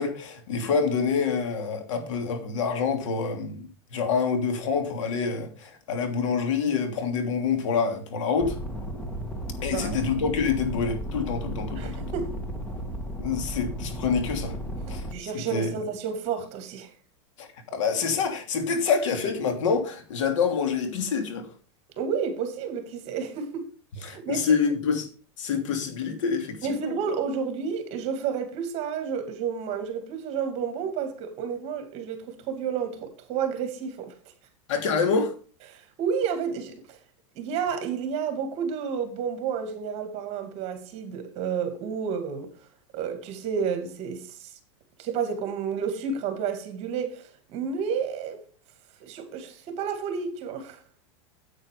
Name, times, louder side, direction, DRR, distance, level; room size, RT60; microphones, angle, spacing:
voice 1, 0.0-8.6 9.6-11.9 13.2-14.6 14.9-15.7 17.4-21.5 24.0-25.1 25.4-27.0 34.7-35.3, left 5 dB, 75° left, 3.0 m, -27 dB
sound 1, 8.4-15.1, equal, 10° left, 1.9 m, -34 dB
voice 2, 11.7-12.4 15.1-16.9 22.0-23.7 24.0-24.5 26.6-34.1 35.7-37.0 37.4-42.5 42.9-44.5 45.0-48.4 49.0-50.8, right 6 dB, 40° right, 2.4 m, -31 dB
9.0 x 8.4 x 5.1 m
supercardioid pair, 140°, 16 cm